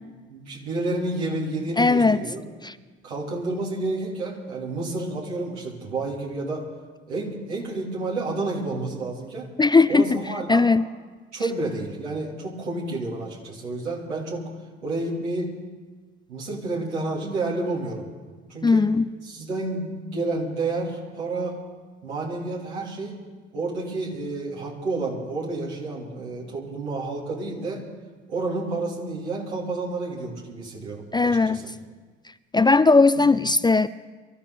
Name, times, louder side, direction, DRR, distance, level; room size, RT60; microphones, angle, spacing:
voice 1, 0.3-2.5 3.0-6.6 7.1-9.5 9.9-10.7 11.3-14.5 14.8-15.5 16.3-18.1 18.5-18.8 19.2-21.6 22.0-23.2 23.5-27.9 28.3-31.7 33.1-33.4, right 2 dB, 85° right, -5 dB, 3.4 m, -30 dB
voice 2, 1.8-2.2 2.6-2.7 9.6-10.2 10.5-10.8 18.6-19.0 31.1-31.6 32.5-33.9, left 3 dB, 15° left, 14 dB, 0.4 m, -18 dB
24.0 x 13.5 x 4.1 m, 1.4 s
figure-of-eight pair, 55°, 34 cm